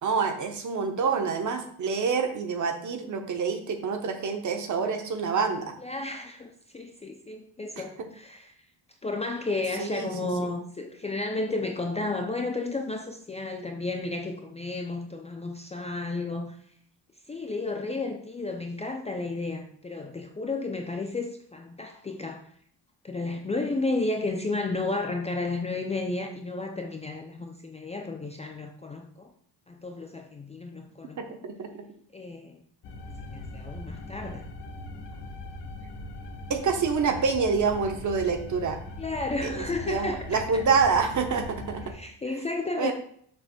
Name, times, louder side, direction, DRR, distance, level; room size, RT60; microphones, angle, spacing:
voice 1, 0.0-5.7 9.8-10.1 31.2-31.7 36.5-38.8 39.4-41.8 42.8-42.9, right 5 dB, 45° right, 5 dB, 1.0 m, -27 dB
voice 2, 5.8-8.5 9.0-16.6 17.3-22.5 23.0-29.3 29.7-31.4 32.1-32.6 33.2-34.4 39.0-40.7 41.9-42.9, left 3 dB, 15° left, 2 dB, 0.4 m, -32 dB
sound 1, 32.8-41.9, left 2 dB, 85° left, 1.4 m, -40 dB
6.7 x 3.2 x 6.0 m, 0.62 s
cardioid pair, 175°, 41 cm